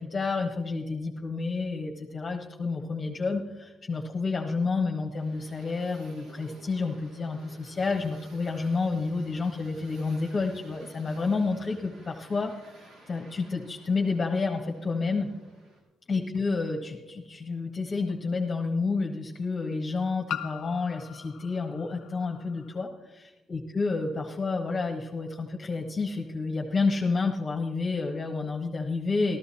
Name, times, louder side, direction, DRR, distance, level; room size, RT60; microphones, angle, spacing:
voice 1, 0.0-12.5 13.1-15.3 16.1-22.9 23.5-29.4, left 4 dB, 35° left, 0 dB, 1.3 m, -29 dB
sound 1, 5.1-15.8, right 2 dB, 80° right, 3.9 m, -53 dB
sound 2, 16.3-16.4 18.1-18.2 20.3-22.8, left 9 dB, 70° left, 0.8 m, -40 dB
13.5 x 13.0 x 4.3 m, 1.1 s
cardioid pair, 90°, 0 cm